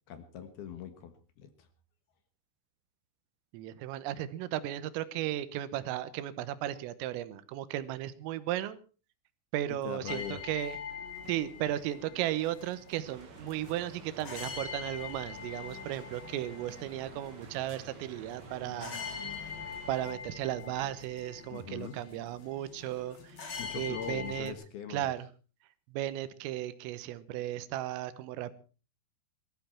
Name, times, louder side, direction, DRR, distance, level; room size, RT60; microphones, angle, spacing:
voice 1, 0.1-1.7 9.8-10.4 21.5-22.0 23.6-25.1, left 8 dB, 65° left, 9 dB, 2.8 m, -42 dB
voice 2, 3.5-8.8 9.5-10.8 11.2-19.5 19.9-24.6 24.9-25.3 25.9-28.5, right 13 dB, 90° right, 14 dB, 3.7 m, -35 dB
sound 1, 10.1-24.5, left 6 dB, 40° left, 2.0 m, -44 dB
sound 2, 13.0-20.1, right 5 dB, 50° right, 3.4 m, -52 dB
21.0 x 14.0 x 4.4 m, 0.37 s
omnidirectional pair, 5.8 m